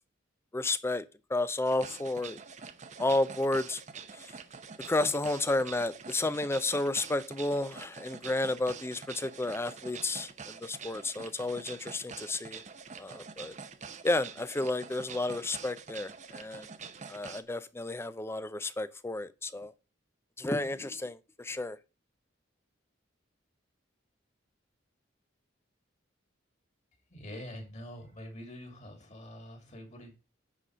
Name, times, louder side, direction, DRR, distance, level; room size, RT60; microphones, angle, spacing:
voice 1, 0.5-2.4 3.0-3.8 4.1-4.3 4.9-12.6 13.0-13.5 14.0-16.7 17.1-19.7 20.4-21.8, left 2 dB, 15° left, 0.5 m, -32 dB
sound 1, 1.6-17.4, right 5 dB, 40° right, 0.7 m, -46 dB
voice 2, 27.1-30.2, equal, 40° left, 2.5 m, -45 dB
9.9 x 4.1 x 6.2 m
head